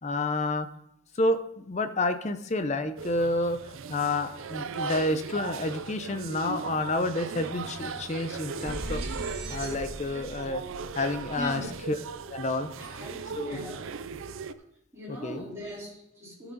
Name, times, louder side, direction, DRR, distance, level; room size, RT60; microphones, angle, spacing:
voice 1, 0.0-0.7 1.1-3.6 3.9-9.0 9.5-10.6 10.9-12.0 12.3-12.7 13.4-13.6 15.1-15.5, left 2 dB, 30° left, 10 dB, 0.6 m, -29 dB
sound 1, 3.0-14.5, right 5 dB, 70° right, 0.5 m, -38 dB
sound 2, 6.0-12.2, right 1 dB, 45° right, 1.3 m, -42 dB
voice 2, 11.3-11.7 12.8-13.8 14.9-16.5, equal, 15° right, -8 dB, 4.1 m, -40 dB
14.5 x 6.0 x 4.0 m, 0.82 s
head